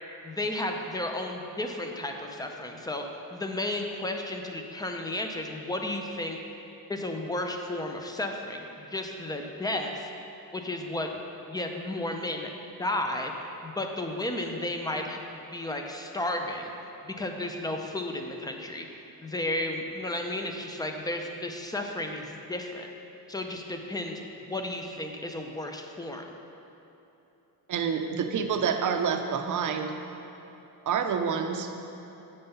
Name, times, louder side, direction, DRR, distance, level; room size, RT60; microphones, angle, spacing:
voice 1, 0.2-3.0 3.3-6.4 6.9-10.1 10.5-11.2 11.5-12.5 12.8-15.2 15.5-16.7 17.0-18.9 19.2-22.9 23.3-26.2, left 1 dB, 10° left, 3 dB, 0.5 m, -33 dB
voice 2, 27.7-30.0 30.9-31.8, right 6 dB, 55° right, 6 dB, 0.6 m, -28 dB
7.9 x 5.4 x 5.5 m, 3.0 s
wide cardioid pair, 160°, 38 cm